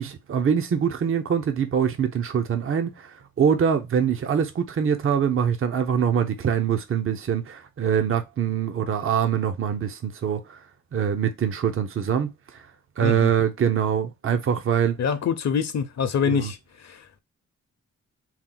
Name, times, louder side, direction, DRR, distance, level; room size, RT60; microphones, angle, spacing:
voice 1, 0.0-10.6 10.9-12.7 13.0-15.0 16.2-16.5, right 8 dB, 45° right, 0.6 m, -24 dB
voice 2, 15.0-16.6 16.8-17.2, left 6 dB, 65° left, 0.7 m, -25 dB
4.5 x 2.2 x 3.8 m
wide cardioid pair, 115°, 29 cm